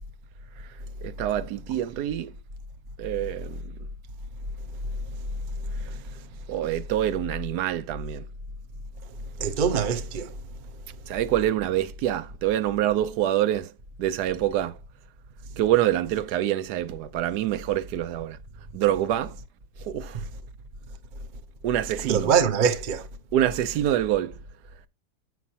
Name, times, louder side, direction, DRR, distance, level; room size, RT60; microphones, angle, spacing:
voice 1, 1.0-2.3 3.0-3.6 6.5-8.2 11.1-13.7 14.0-14.7 15.6-18.4 18.7-19.3 19.8-20.2 21.6-22.3 23.3-24.3, right 12 dB, 80° right, 1.1 m, -26 dB
voice 2, 9.4-10.3 20.1-20.2 22.1-23.1, right 7 dB, 45° right, 0.6 m, -23 dB
8.2 x 6.1 x 2.7 m
omnidirectional pair, 1.8 m